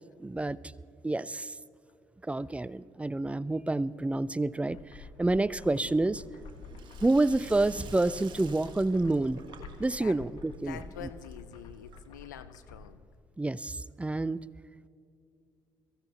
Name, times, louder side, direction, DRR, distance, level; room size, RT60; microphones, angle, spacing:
voice 1, 0.2-0.6 1.0-1.6 2.2-6.2 7.0-9.5 9.8-11.1 13.4-14.4, right 2 dB, 15° right, 20 dB, 0.4 m, -28 dB
sound 1, 4.7-12.9, left 4 dB, 65° left, 1.4 m, -48 dB
Sink (filling or washing), 5.6-12.4, right 6 dB, 55° right, 1.3 m, -52 dB
voice 2, 10.6-13.0, left 9 dB, 85° left, 12 dB, 0.6 m, -46 dB
23.0 x 15.5 x 2.9 m, 2.6 s
hypercardioid pair, 50°, 9 cm